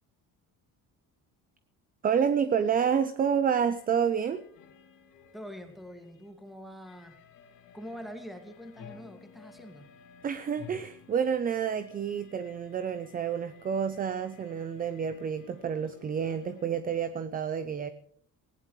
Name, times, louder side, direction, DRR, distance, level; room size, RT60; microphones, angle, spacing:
voice 1, 2.0-4.4 10.2-17.9, right 7 dB, 25° right, 0.6 m, -29 dB
sound 1, 3.6-16.7, left 7 dB, 65° left, 3.1 m, -55 dB
voice 2, 5.3-7.2 7.7-9.9, equal, ahead, 2.2 m, -44 dB
19.0 x 17.5 x 3.3 m
cardioid pair, 165°, 35 cm